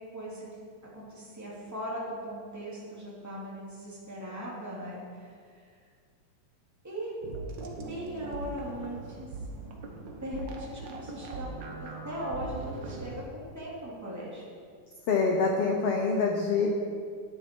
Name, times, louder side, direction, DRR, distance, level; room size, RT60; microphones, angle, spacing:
voice 1, 0.1-0.7 0.9-5.3 6.8-7.1 7.6-9.3 10.2-11.5 11.8-14.4, equal, 5° right, -6 dB, 2.1 m, -39 dB
sound 1, 7.2-13.2, right 3 dB, 75° right, 1.0 m, -40 dB
voice 2, 15.1-16.7, left 4 dB, 80° left, 1 dB, 1.3 m, -25 dB
12.5 x 10.0 x 4.5 m, 2.1 s
omnidirectional pair, 3.8 m